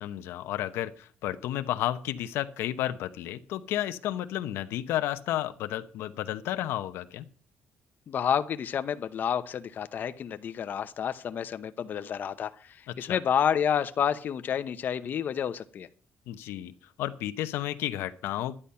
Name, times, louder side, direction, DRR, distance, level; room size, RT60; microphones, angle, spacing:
voice 1, 0.0-7.2 12.9-13.2 16.3-16.7 17.0-18.6, left 13 dB, 85° left, 10 dB, 0.9 m, -32 dB
voice 2, 8.1-12.5 13.0-15.9, left 8 dB, 50° left, 10 dB, 0.9 m, -29 dB
11.0 x 10.5 x 5.6 m, 0.40 s
cardioid pair, 115°, 4 cm